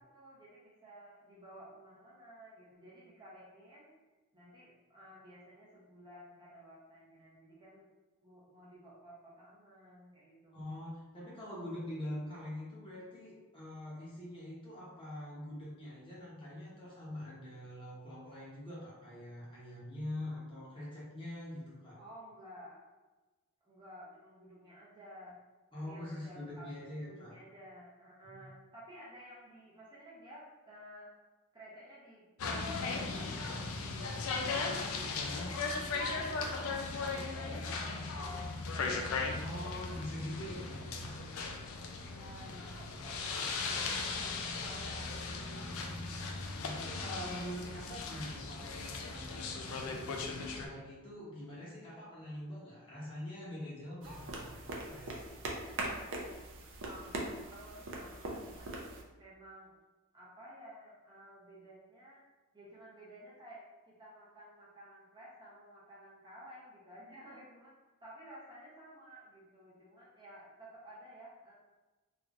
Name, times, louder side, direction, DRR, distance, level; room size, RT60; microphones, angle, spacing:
voice 1, 0.1-3.9 4.3-7.8 8.2-10.8 22.0-22.8 23.6-25.3 25.8-31.1 31.5-36.8 37.1-39.4 42.0-44.2 44.6-46.1 54.0-54.8 55.7-56.3 56.8-58.7 59.2-59.7 60.1-62.2 62.5-67.7 68.0-71.5, equal, 20° right, -7 dB, 0.7 m, -54 dB
voice 2, 10.5-22.0 25.7-27.3 28.2-28.5 39.3-41.1 44.9-45.0 46.6-54.4 54.9-55.2, left 1 dB, 25° left, -7 dB, 0.9 m, -44 dB
sound 1, 32.4-50.7, left 4 dB, 65° left, 0.4 m, -38 dB
sound 2, 54.0-59.0, right 2 dB, 60° right, 0.6 m, -41 dB
3.3 x 2.9 x 2.4 m, 1.2 s
head